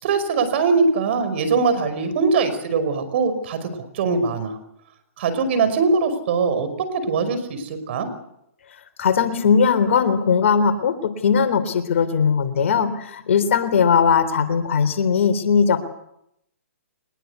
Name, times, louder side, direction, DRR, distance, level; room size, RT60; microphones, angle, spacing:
voice 1, 0.0-3.7 3.9-4.5 5.2-8.1, right 4 dB, 50° right, 11 dB, 5.5 m, -21 dB
voice 2, 9.0-15.8, left 6 dB, 60° left, 11 dB, 3.7 m, -19 dB
23.0 x 21.0 x 8.3 m, 0.78 s
hypercardioid pair, 130°, 8 cm